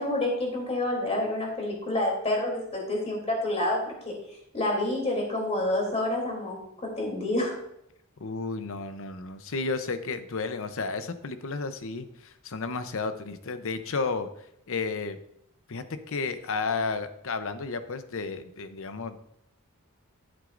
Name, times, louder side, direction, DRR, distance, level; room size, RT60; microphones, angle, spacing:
voice 1, 0.0-3.8 4.5-6.5 6.8-7.5, left 1 dB, 30° left, -1 dB, 3.1 m, -28 dB
voice 2, 8.2-14.3 14.7-15.2 15.7-19.2, left 4 dB, 65° left, 10 dB, 0.7 m, -32 dB
11.0 x 8.0 x 2.6 m, 0.76 s
head